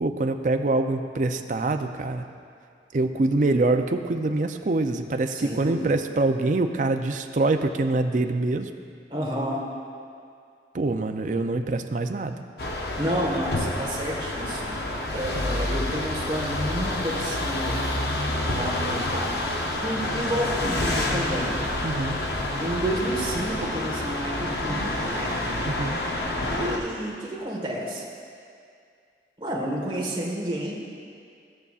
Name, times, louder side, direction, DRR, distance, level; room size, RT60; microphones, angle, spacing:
voice 1, 0.0-2.3 2.9-8.7 10.7-12.4 21.8-22.2 25.6-26.0, right 2 dB, 45° right, 7 dB, 0.4 m, -25 dB
voice 2, 5.3-5.9 9.1-9.6 13.0-14.7 15.1-17.8 18.6-19.4 19.8-21.5 22.6-25.4 26.5-28.0 29.4-30.8, right 1 dB, 25° right, -4 dB, 1.4 m, -30 dB
sound 1, 12.6-26.8, left 1 dB, 60° left, 0.8 m, -28 dB
16.5 x 6.7 x 2.4 m, 2.3 s
head